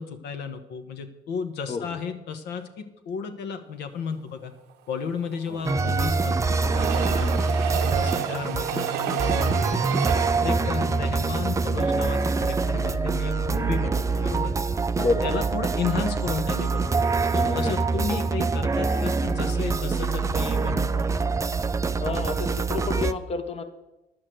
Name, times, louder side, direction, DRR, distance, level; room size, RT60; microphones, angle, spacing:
voice 1, 0.0-4.5 4.9-7.6 7.9-9.9 10.4-14.5 15.0-17.1 17.5-21.0, left 6 dB, 80° left, 7 dB, 1.2 m, -33 dB
voice 2, 1.7-2.0 5.5-5.6 7.2-7.4 10.5-10.7 15.0-15.4 17.3-18.3 22.0-23.6, left 4 dB, 35° left, 9 dB, 0.9 m, -30 dB
Train, 5.0-12.3 12.8-12.9 13.1-13.2, right 11 dB, 85° right, 0.7 m, -32 dB
sound 1, 5.6-23.1, right 4 dB, 20° right, 0.4 m, -25 dB
10.5 x 6.4 x 7.7 m, 0.98 s
cardioid pair, 110°, 17 cm